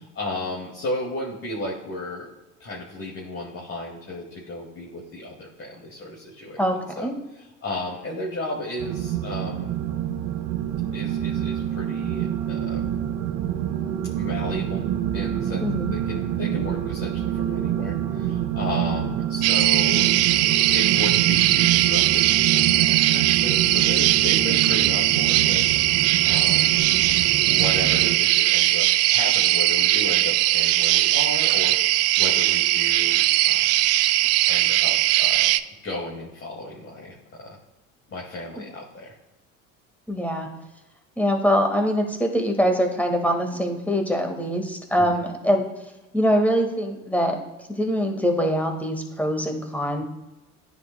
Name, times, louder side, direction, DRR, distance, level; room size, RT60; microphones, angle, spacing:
voice 1, 0.1-2.3 2.6-7.1 7.6-9.7 10.9-12.9 14.2-14.8 15.1-15.6 15.9-20.1 20.4-25.6 26.2-26.7 27.4-33.6 34.5-35.5 35.8-37.6 38.1-39.1 45.0-45.2, left 2 dB, 30° left, -4 dB, 2.3 m, -34 dB
sound 1, 8.8-28.2, right 10 dB, 55° right, 0.9 m, -27 dB
voice 2, 15.6-15.9 40.1-40.5 41.2-45.6 46.1-47.4 47.7-50.0, equal, 5° left, 3 dB, 1.8 m, -23 dB
sound 2, 19.4-35.6, right 16 dB, 40° right, 0.4 m, -20 dB
14.0 x 6.0 x 2.3 m, 1.0 s
figure-of-eight pair, 65°, 40 cm